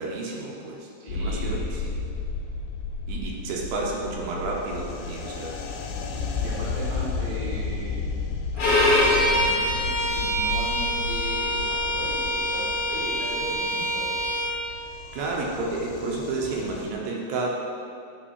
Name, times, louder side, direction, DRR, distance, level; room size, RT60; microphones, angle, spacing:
voice 1, 0.0-1.9 3.1-5.6 15.1-17.5, right 3 dB, 75° right, -2 dB, 2.6 m, -31 dB
voice 2, 1.0-1.8 6.4-8.1 8.5-14.1, right 1 dB, 45° right, -6 dB, 1.4 m, -38 dB
sound 1, 1.1-16.9, left 4 dB, 85° left, 2.6 m, -33 dB
Bowed string instrument, 8.6-14.6, left 1 dB, 50° left, 1.9 m, -24 dB
8.9 x 4.8 x 4.6 m, 2.6 s
omnidirectional pair, 4.4 m